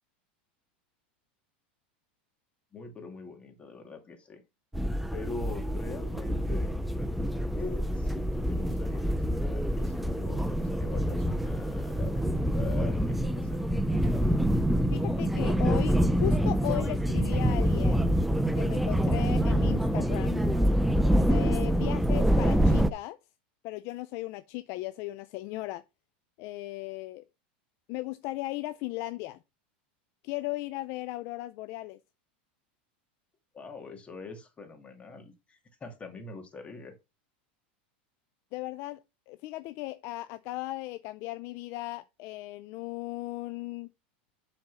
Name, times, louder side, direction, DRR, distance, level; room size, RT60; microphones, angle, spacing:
voice 1, 2.7-4.4 5.1-6.7 7.5-14.6 33.5-36.9, left 3 dB, 20° left, 2.3 m, -43 dB
sound 1, 4.7-22.9, equal, ahead, 0.6 m, -26 dB
voice 2, 14.9-18.0 18.6-20.4 21.3-23.2 23.6-25.8 26.4-27.2 27.9-29.4 30.2-32.0 38.5-43.9, left 18 dB, 55° left, 0.4 m, -36 dB
7.7 x 4.2 x 5.6 m
supercardioid pair, 115°, 6 cm